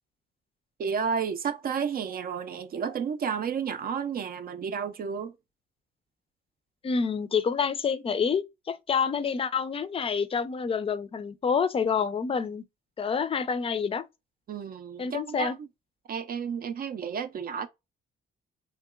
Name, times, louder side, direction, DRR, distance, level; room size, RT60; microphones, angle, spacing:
voice 1, 0.8-5.3 14.5-15.7 16.1-17.7, right 6 dB, 50° right, 0.4 m, -32 dB
voice 2, 6.8-12.6 13.0-14.0 15.0-15.5, left 6 dB, 30° left, 0.4 m, -28 dB
2.9 x 2.8 x 2.3 m
cardioid pair, 90°, 20 cm